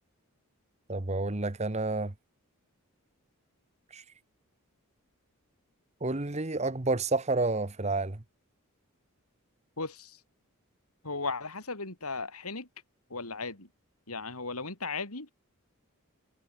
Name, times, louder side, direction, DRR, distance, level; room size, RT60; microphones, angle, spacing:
voice 1, 0.9-2.1 3.9-4.0 6.0-8.2, right 3 dB, 30° right, 1.1 m, -30 dB
voice 2, 9.8-10.2 11.0-12.7 13.1-13.7 14.1-15.3, left 3 dB, 80° left, 4.8 m, -36 dB
head